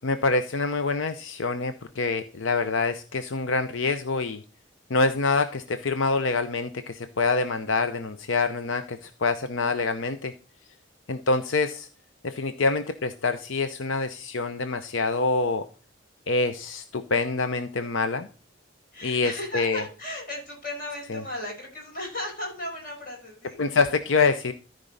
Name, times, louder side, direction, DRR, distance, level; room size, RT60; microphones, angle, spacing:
voice 1, 0.0-4.4 4.9-10.3 11.1-11.9 12.2-15.6 16.3-18.3 19.0-19.8 21.1-21.2 23.6-24.5, left 4 dB, 85° left, 10 dB, 0.7 m, -26 dB
voice 2, 18.9-23.6, left 1 dB, 45° left, 0 dB, 5.1 m, -36 dB
13.5 x 5.3 x 3.9 m, 0.37 s
head